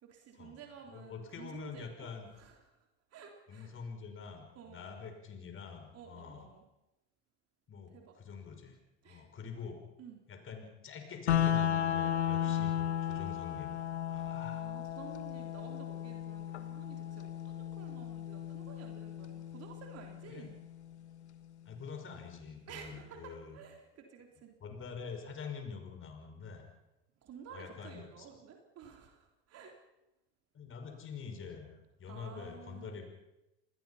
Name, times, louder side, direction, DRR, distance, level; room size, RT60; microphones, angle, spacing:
voice 1, 0.0-2.7 3.1-3.7 4.6-4.9 5.9-6.6 7.9-8.1 9.0-9.3 10.0-10.2 12.4-12.7 14.5-20.6 22.7-24.5 27.2-29.8 32.1-33.0, right 7 dB, 50° right, 3 dB, 3.7 m, -52 dB
voice 2, 0.9-2.3 3.5-6.5 7.7-8.8 9.0-9.8 10.3-13.8 14.1-14.7 20.3-20.5 21.7-23.6 24.6-26.6 27.5-28.3 30.5-33.0, left 6 dB, 40° left, 5 dB, 5.7 m, -46 dB
sound 1, 11.3-21.3, left 10 dB, 90° left, 1.6 m, -35 dB
28.0 x 20.5 x 5.8 m, 0.95 s
hypercardioid pair, 80°, 33 cm